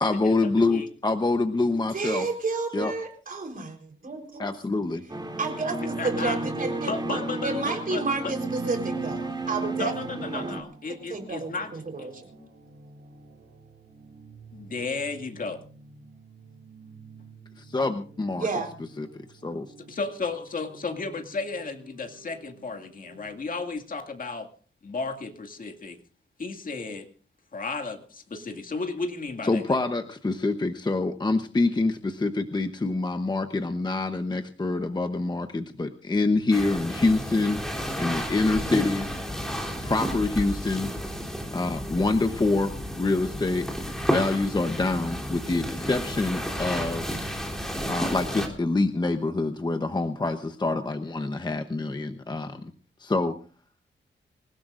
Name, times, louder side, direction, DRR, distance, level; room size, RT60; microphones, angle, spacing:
voice 1, 0.0-2.3 2.7-2.9 4.4-5.0 17.6-18.5 19.0-19.7 29.4-37.6 38.0-39.2 39.8-40.9 41.5-43.7 44.1-47.2 47.9-52.7 53.0-53.3, left 3 dB, 20° left, 7 dB, 0.9 m, -26 dB
voice 2, 1.9-3.8 4.0-4.5 5.4-10.5 11.1-12.4 18.3-18.7, right 3 dB, 45° right, 4 dB, 4.1 m, -31 dB
sound 1, 5.1-10.6, right 2 dB, 20° right, 2.8 m, -32 dB
voice 3, 6.0-6.4 6.8-8.3 9.8-11.7 12.0-12.1 14.5-15.6 19.9-24.5 24.8-26.0 26.4-27.1 27.5-29.8, left 4 dB, 45° left, 4 dB, 2.2 m, -33 dB
sound 2, 8.2-23.3, right 3 dB, 85° right, 4.8 m, -51 dB
sound 3, 36.5-48.5, equal, ahead, 3.3 m, -32 dB
26.0 x 16.5 x 2.6 m, 0.38 s
wide cardioid pair, 145°, 20 cm